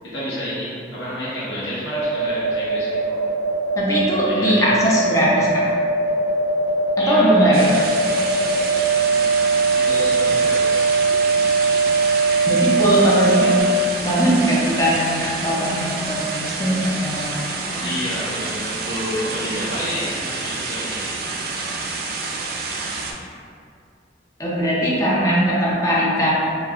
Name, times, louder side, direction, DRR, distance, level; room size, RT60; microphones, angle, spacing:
voice 1, 0.0-3.2 4.3-4.7 7.0-8.0 9.7-10.8 17.8-21.1, equal, 80° left, -10 dB, 1.0 m, -29 dB
sound 1, 1.9-13.6, right 4 dB, 45° left, 1.0 m, -20 dB
voice 2, 3.8-5.7 7.0-7.8 12.5-13.5 14.0-17.9 24.4-26.3, equal, 20° left, -6 dB, 0.5 m, -20 dB
sound 2, 7.5-23.1, right 3 dB, 55° right, 0.3 m, -28 dB
3.0 x 2.4 x 2.3 m, 2.3 s
head